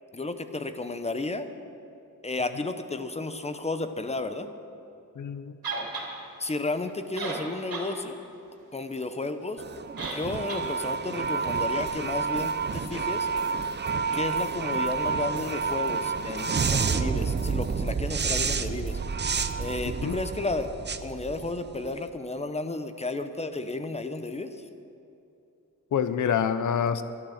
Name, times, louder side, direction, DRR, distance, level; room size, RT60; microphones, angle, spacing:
voice 1, 0.1-1.5 2.2-4.5 6.4-8.2 8.7-9.6 10.0-13.3 14.1-19.0 19.6-20.7 21.0-24.6, left 2 dB, 20° left, 9 dB, 0.7 m, -32 dB
voice 2, 5.2-5.5 20.0-20.2 25.9-27.0, left 8 dB, 60° left, 11 dB, 0.6 m, -26 dB
sound 1, 5.6-6.1 6.9-7.0 7.2-7.9 8.3-8.4 10.0-10.2 10.5-10.6, right 3 dB, 85° right, 2.4 m, -33 dB
sound 2, 9.6-22.0, right 5 dB, 30° right, 0.5 m, -29 dB
sound 3, 11.9-18.6 18.9-19.9, right 4 dB, 60° right, 2.0 m, -49 dB
12.0 x 11.5 x 6.4 m, 2.8 s
wide cardioid pair, 125°, 35 cm